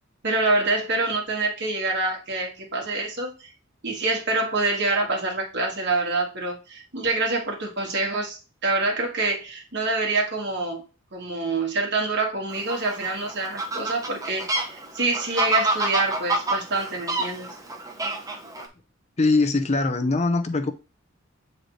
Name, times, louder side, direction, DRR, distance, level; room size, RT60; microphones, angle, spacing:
voice 1, 0.2-3.5 3.8-10.8 11.1-17.5, right 2 dB, 60° right, 1.9 m, -26 dB
Fowl, 12.5-18.7, right 2 dB, 15° right, 0.9 m, -28 dB
voice 2, 19.2-20.7, left 3 dB, 35° left, 0.6 m, -22 dB
7.9 x 3.9 x 3.2 m
head